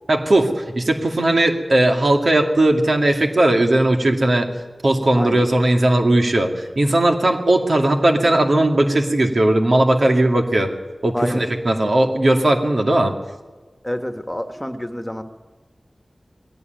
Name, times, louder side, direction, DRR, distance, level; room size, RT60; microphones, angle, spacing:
voice 1, 0.1-4.5 4.8-10.7 11.0-13.1, right 1 dB, 70° right, 4 dB, 2.4 m, -17 dB
voice 2, 5.1-5.5 11.1-11.5 13.8-15.2, equal, 10° left, 8 dB, 1.8 m, -28 dB
20.5 x 17.5 x 9.3 m, 1.3 s
cardioid pair, 40°, 0 cm